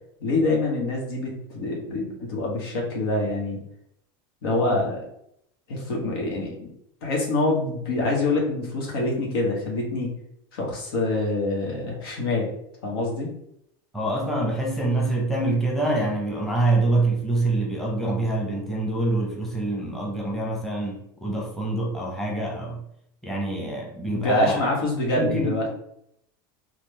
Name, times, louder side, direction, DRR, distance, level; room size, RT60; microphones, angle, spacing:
voice 1, 0.2-3.6 4.4-5.0 5.7-6.7 7.0-10.1 10.5-12.5 12.8-13.3 24.1-25.7, left 2 dB, 90° left, -2 dB, 1.3 m, -25 dB
voice 2, 13.9-22.8 23.2-24.6 25.1-25.7, right 2 dB, ahead, -3 dB, 0.8 m, -25 dB
3.8 x 2.4 x 3.2 m, 0.74 s
supercardioid pair, 140°, 12 cm